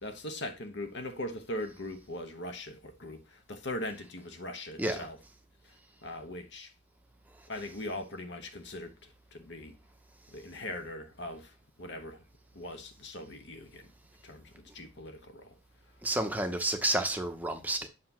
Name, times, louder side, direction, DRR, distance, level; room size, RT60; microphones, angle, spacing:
voice 1, 0.0-5.2 5.6-5.7 6.0-6.7 7.5-9.7 10.3-12.2 12.5-13.9 14.2-15.5, left 1 dB, 60° left, 1.0 m, -40 dB
voice 2, 16.0-17.9, right 1 dB, 10° right, 0.7 m, -30 dB
7.6 x 2.8 x 5.9 m
head